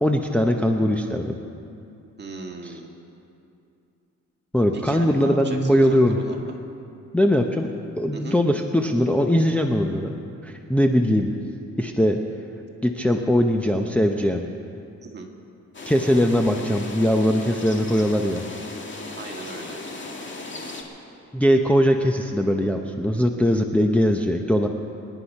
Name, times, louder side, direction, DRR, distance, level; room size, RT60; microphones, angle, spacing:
voice 1, 0.0-1.4 4.5-6.2 7.1-7.7 8.0-10.1 10.4-11.3 11.8-12.2 12.8-14.5 15.9-18.4 21.3-24.7, equal, 5° left, 2 dB, 0.7 m, -20 dB
voice 2, 2.2-2.9 4.7-6.5 8.1-8.4 15.0-15.3 19.2-19.8, right 3 dB, 35° right, 2 dB, 1.9 m, -37 dB
sound 1, 15.7-20.8, left 3 dB, 40° left, 2.0 m, -36 dB
25.0 x 10.0 x 5.4 m, 2.6 s
cardioid pair, 110°, 30 cm